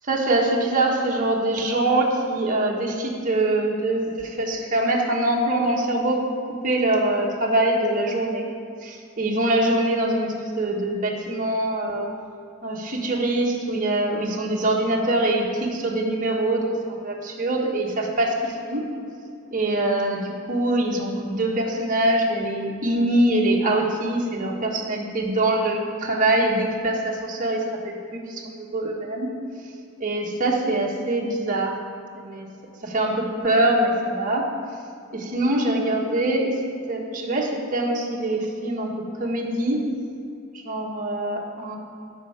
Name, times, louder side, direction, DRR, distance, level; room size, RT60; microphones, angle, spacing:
voice 1, 0.1-6.2 6.5-8.5 8.8-12.1 12.6-18.9 19.5-29.3 30.0-31.8 32.1-32.5 32.8-34.5 35.1-36.5 36.9-39.8 40.5-41.8, right 1 dB, 35° right, -2 dB, 1.4 m, -24 dB
13.0 x 5.5 x 5.0 m, 2.5 s
head